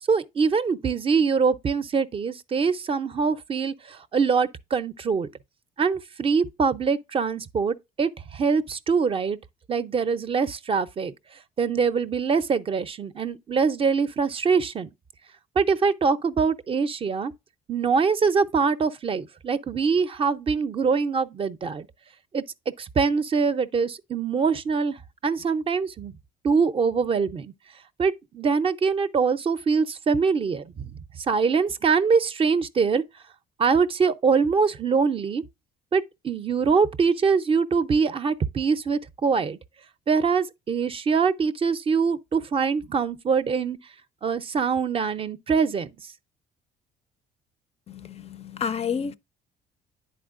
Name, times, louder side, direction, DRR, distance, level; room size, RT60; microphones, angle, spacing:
voice 1, 0.1-5.3 5.8-9.4 9.7-11.1 11.6-14.9 15.6-17.3 17.7-21.9 22.3-22.4 22.8-26.1 26.4-27.5 28.0-30.9 31.2-33.0 33.6-35.4 35.9-39.6 40.1-43.8 44.2-45.9, right 5 dB, 35° right, 0.5 m, -23 dB
voice 2, 47.9-49.1, left 6 dB, 40° left, 0.4 m, -30 dB
10.0 x 4.3 x 2.4 m
cardioid pair, 110°, 17 cm